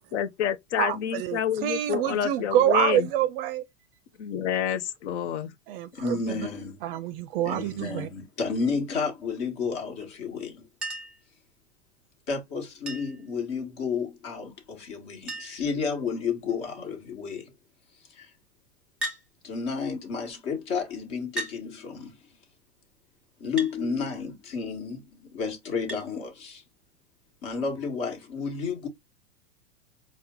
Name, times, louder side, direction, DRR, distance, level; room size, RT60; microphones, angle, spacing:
voice 1, 0.1-3.1 4.2-5.5, left 9 dB, 65° left, 0.7 m, -28 dB
voice 2, 0.8-3.6 5.7-6.5 6.8-8.1, right 11 dB, 50° right, 0.4 m, -26 dB
voice 3, 5.9-6.8 7.4-10.6 12.3-17.5 18.1-18.3 19.4-22.3 23.4-26.6 27.4-28.9, left 5 dB, 45° left, 1.3 m, -31 dB
Chink clink, 10.8-11.3 12.9-13.3 14.6-14.7 14.9-15.0 15.3-15.7 16.5-16.9 19.0-19.3 20.3-20.4 21.4-21.6 23.6-23.8 25.9-26.1 27.5-27.6, right 1 dB, ahead, 1.1 m, -35 dB
4.3 x 2.2 x 3.6 m
hypercardioid pair, 120°, 36 cm